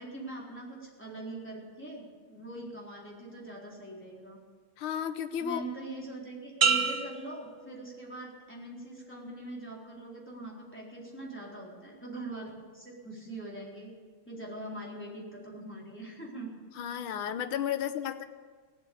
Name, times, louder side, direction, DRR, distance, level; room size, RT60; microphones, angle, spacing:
voice 1, 0.0-4.4 5.4-13.9 14.3-16.5, right 2 dB, 5° left, -5 dB, 3.8 m, -42 dB
voice 2, 4.8-5.6 16.8-18.3, left 9 dB, 70° left, 8 dB, 1.6 m, -33 dB
sound 1, 6.6-8.4 8.9-9.3, right 5 dB, 50° right, 1.0 m, -30 dB
19.0 x 7.9 x 8.5 m, 1.5 s
omnidirectional pair, 2.4 m